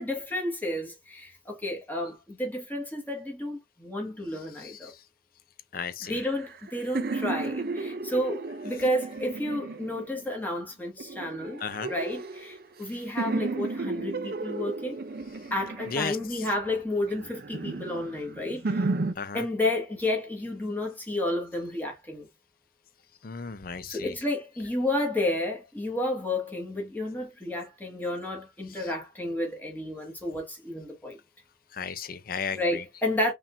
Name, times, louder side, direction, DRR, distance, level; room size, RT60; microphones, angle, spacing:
voice 1, 0.0-4.9 6.0-11.6 11.9-15.0 15.5-18.9 19.3-22.3 23.9-31.2 32.5-33.3, left 1 dB, 10° left, 1.5 m, -31 dB
voice 2, 5.7-6.1 11.6-11.9 15.9-16.2 19.2-19.4 23.2-24.1 31.8-32.8, left 5 dB, 50° left, 0.6 m, -34 dB
sound 1, 6.1-10.4 11.0-12.9 13.2-16.5 17.1-19.1, right 3 dB, 50° right, 0.5 m, -34 dB
4.9 x 3.6 x 2.6 m
head